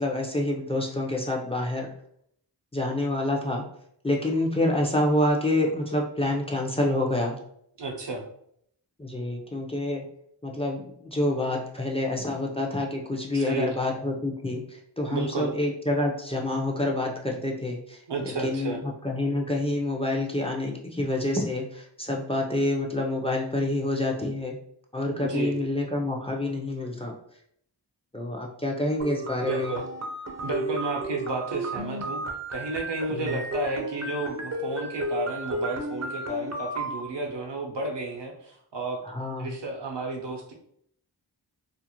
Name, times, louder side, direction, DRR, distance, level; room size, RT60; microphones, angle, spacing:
voice 1, 0.0-1.9 2.7-3.6 4.0-7.4 9.0-10.0 10.4-24.6 24.9-27.1 28.1-29.8 33.1-33.4 39.0-39.5, left 1 dB, 15° left, 0 dB, 0.5 m, -27 dB
voice 2, 7.8-8.2 13.3-13.7 15.1-15.5 18.1-18.8 25.3-25.5 29.5-29.8 30.4-32.2 32.5-39.0 39.4-40.5, right 2 dB, 75° right, 1 dB, 0.7 m, -32 dB
sound 1, 29.0-37.0, right 1 dB, 40° right, 0.5 m, -33 dB
2.5 x 2.0 x 2.9 m, 0.67 s
wide cardioid pair, 40°, 43 cm